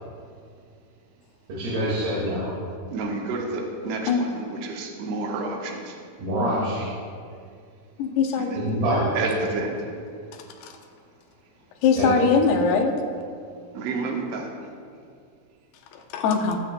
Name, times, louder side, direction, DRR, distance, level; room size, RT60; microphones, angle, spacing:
voice 1, 1.5-2.5 6.2-6.8 8.6-9.1 12.0-12.1, equal, 80° right, -8 dB, 4.1 m, -25 dB
voice 2, 2.9-6.0 6.8-7.0 8.4-8.7 9.1-10.0 13.7-14.5, right 3 dB, 65° right, 0 dB, 1.7 m, -30 dB
voice 3, 8.0-8.6 10.6-10.7 11.8-12.9 15.9-16.6, left 5 dB, 90° left, 4 dB, 2.9 m, -21 dB
19.0 x 8.3 x 2.2 m, 2.3 s
omnidirectional pair, 4.4 m